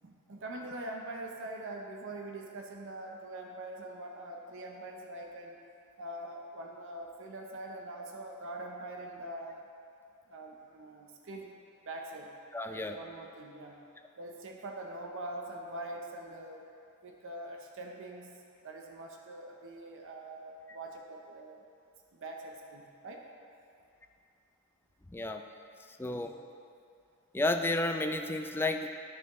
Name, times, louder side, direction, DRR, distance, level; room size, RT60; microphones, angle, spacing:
voice 1, 0.0-5.6 6.0-9.7 10.3-11.6 11.8-12.3 12.7-13.8 14.2-16.7 17.0-21.6 22.1-23.2 26.1-26.2, right 1 dB, 60° right, 1 dB, 0.7 m, -43 dB
voice 2, 12.5-13.0 25.1-25.4 25.9-26.3 27.3-28.9, left 2 dB, 10° left, 5 dB, 0.3 m, -31 dB
13.0 x 5.7 x 3.1 m, 2.5 s
head